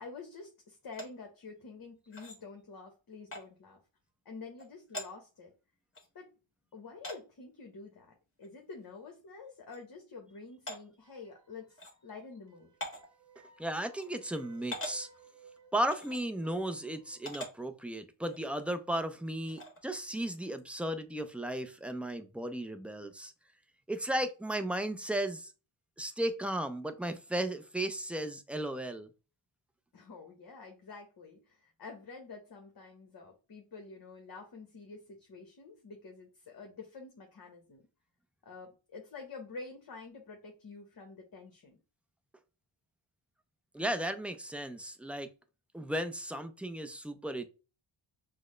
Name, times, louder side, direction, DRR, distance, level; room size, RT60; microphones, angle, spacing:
voice 1, 0.0-3.8 4.2-5.5 6.1-6.3 6.7-12.7 19.5-19.6 29.9-37.9 38.4-41.8, left 4 dB, 45° left, 1.1 m, -48 dB
sound 1, 0.9-1.1 2.1-2.4 3.3-3.4 4.6-4.7 4.9-5.1 5.9-6.1 7.0-7.2 8.4-8.5 8.9-9.0 9.7-9.8 10.7-10.8 11.8-11.9 12.8-13.1 14.0-14.1 14.7-15.0 15.9-16.2 17.2-17.5 18.2-18.4 19.6-19.8, left 1 dB, 25° left, 1.7 m, -41 dB
sound 2, 11.0-12.1 12.5-17.4, right 5 dB, 35° right, 0.8 m, -58 dB
voice 2, 13.6-15.1 15.7-23.3 23.9-25.5 26.0-29.1 43.7-45.3 45.7-47.4, right 1 dB, 5° right, 0.4 m, -35 dB
6.1 x 2.2 x 3.1 m
cardioid pair, 90°, 50 cm